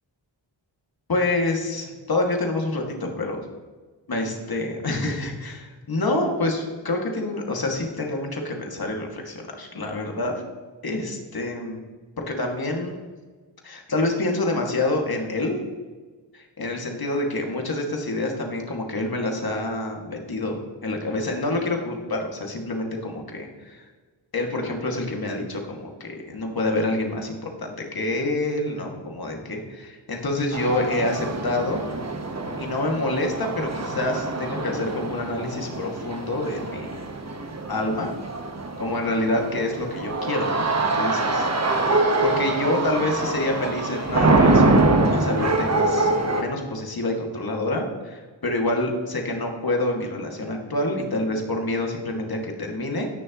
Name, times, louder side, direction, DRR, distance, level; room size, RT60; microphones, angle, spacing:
voice 1, 1.1-3.4 4.1-10.4 10.8-11.8 12.2-12.9 13.6-15.6 16.3-20.6 20.8-23.8 24.3-31.8 32.6-36.9 37.7-38.1 38.8-41.5 42.2-46.1 46.4-53.1, left 2 dB, 50° left, 1 dB, 2.4 m, -27 dB
sound 1, 30.5-46.4, right 2 dB, 35° right, 1.4 m, -24 dB
17.5 x 6.6 x 3.1 m, 1.4 s
cardioid pair, 50°, 46 cm